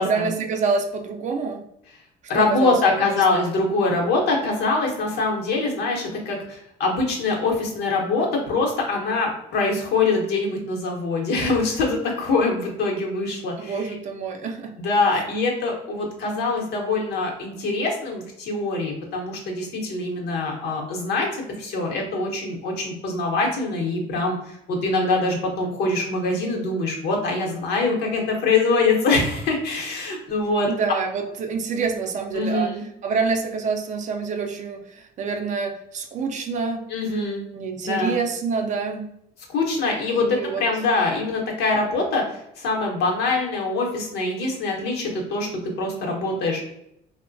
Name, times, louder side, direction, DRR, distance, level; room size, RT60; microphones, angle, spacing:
voice 1, 0.0-1.6 2.3-3.5 13.6-14.7 30.7-32.7 33.0-36.9 37.5-39.1 40.1-40.6, right 5 dB, 45° right, 4 dB, 0.4 m, -27 dB
voice 2, 2.3-13.9 14.8-30.7 32.3-32.8 36.9-37.4 37.8-38.2 39.5-45.5 45.8-46.7, left 3 dB, 75° left, 0 dB, 0.8 m, -24 dB
2.9 x 2.1 x 2.5 m, 0.78 s
cardioid pair, 110°, 17 cm